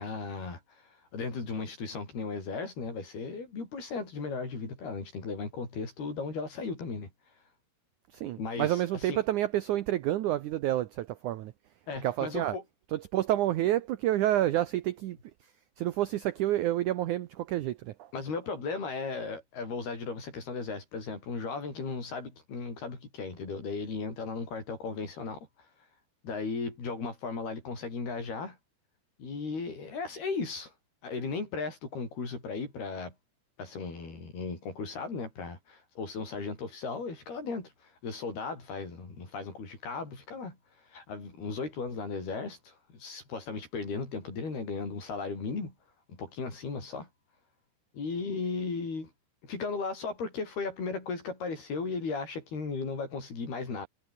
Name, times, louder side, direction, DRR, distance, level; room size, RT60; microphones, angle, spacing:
voice 1, 0.0-7.1 8.4-9.2 11.9-12.6 18.1-25.5 26.2-28.6 29.2-30.7 31.0-33.1 33.6-40.6 40.9-45.7 46.1-47.1 47.9-49.1 49.4-53.9, left 4 dB, 70° left, 9.5 m, -36 dB
voice 2, 8.1-11.5 12.0-12.6 12.9-15.2 15.8-18.1, right 13 dB, 80° right, 1.7 m, -29 dB
omnidirectional pair, 4.7 m